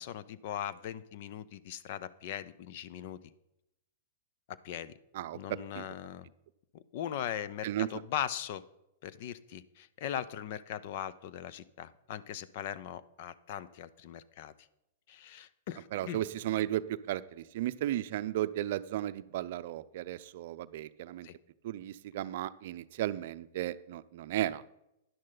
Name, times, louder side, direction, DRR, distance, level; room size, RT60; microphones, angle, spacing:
voice 1, 0.0-3.2 4.5-4.9 5.3-6.3 6.7-8.6 9.0-14.5 15.1-16.2 21.2-21.3, left 10 dB, 55° left, 16 dB, 0.7 m, -39 dB
voice 2, 5.1-5.8 7.6-7.9 15.9-21.3 21.6-24.6, right 13 dB, 60° right, 13 dB, 0.5 m, -35 dB
11.0 x 10.5 x 3.9 m, 0.84 s
hypercardioid pair, 120°, 0 cm